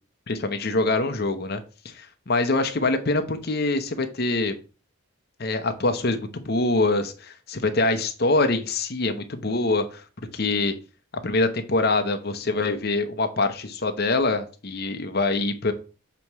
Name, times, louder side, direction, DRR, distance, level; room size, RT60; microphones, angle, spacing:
voice 1, 0.3-4.5 5.4-10.0 10.3-10.7 11.2-15.7, left 2 dB, 45° left, 7 dB, 0.8 m, -24 dB
7.0 x 3.0 x 4.6 m, 0.34 s
head